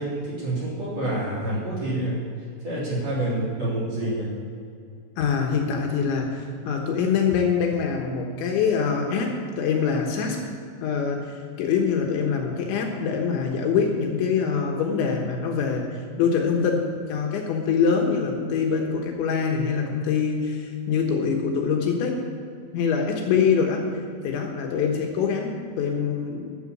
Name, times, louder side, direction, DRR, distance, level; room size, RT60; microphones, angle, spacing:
voice 1, 0.0-2.2 2.6-4.3, right 1 dB, 35° right, -8 dB, 3.9 m, -27 dB
voice 2, 5.2-10.4 10.8-15.9 16.2-22.2 22.7-23.9 24.2-26.5, left 6 dB, 75° left, 1 dB, 3.4 m, -24 dB
12.5 x 8.2 x 7.3 m, 2.4 s
omnidirectional pair, 5.6 m